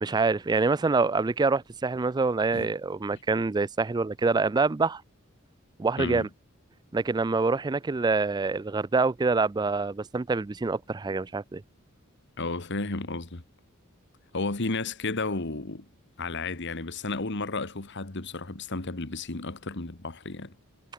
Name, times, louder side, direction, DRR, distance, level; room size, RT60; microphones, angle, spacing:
voice 1, 0.0-5.0 5.8-6.3 6.9-11.6, right 4 dB, 20° right, 0.4 m, -26 dB
voice 2, 6.0-6.3 12.4-13.4 14.3-15.9 16.2-20.5, left 3 dB, 55° left, 1.8 m, -32 dB
head